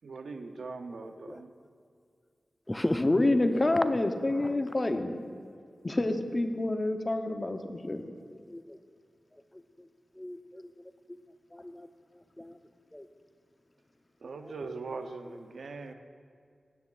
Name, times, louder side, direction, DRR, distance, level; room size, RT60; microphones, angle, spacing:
voice 1, 0.0-1.5 14.2-15.9, right 4 dB, 90° right, 7 dB, 0.6 m, -41 dB
voice 2, 1.0-1.4 2.7-3.2 4.4-4.5 4.8-5.0 8.5-8.8 10.2-10.6 11.5-11.9 12.4-12.5 12.9-13.0 14.6-14.7 15.3-15.4, left 1 dB, 15° left, 10 dB, 0.3 m, -36 dB
voice 3, 3.0-5.2 5.8-8.0, left 2 dB, 30° left, 6 dB, 0.7 m, -27 dB
15.5 x 9.4 x 2.4 m, 2.2 s
wide cardioid pair, 85°, 0 cm